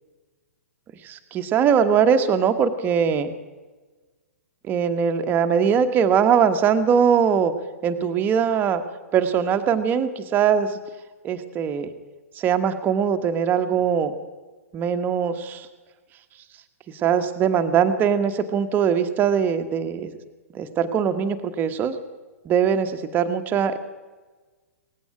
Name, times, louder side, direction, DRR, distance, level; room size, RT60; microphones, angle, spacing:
voice 1, 1.0-3.3 4.6-7.5 7.8-8.8 9.1-10.7 11.2-11.9 12.4-14.1 14.7-15.7 17.0-20.1 20.5-21.9 22.4-23.8, right 7 dB, 25° right, 8 dB, 1.2 m, -21 dB
18.0 x 15.5 x 5.0 m, 1.3 s
figure-of-eight pair, 110°, 8 cm